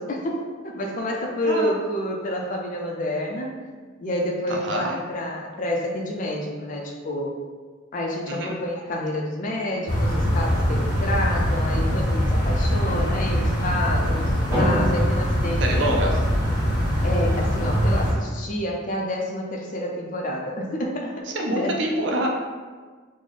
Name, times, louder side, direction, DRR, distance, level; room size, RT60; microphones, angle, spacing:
voice 1, 0.0-3.6 4.0-7.3 7.9-16.1 17.0-21.8, left 1 dB, 40° left, -1 dB, 0.4 m, -29 dB
voice 2, 4.5-4.9 8.3-8.6 15.6-16.2 21.3-22.3, right 1 dB, 60° right, 0 dB, 0.5 m, -25 dB
sound 1, 9.9-18.1, equal, 20° left, 0.8 m, -22 dB
Drum, 14.5-16.6, equal, 10° right, 1.2 m, -28 dB
3.3 x 2.0 x 3.8 m, 1.5 s
head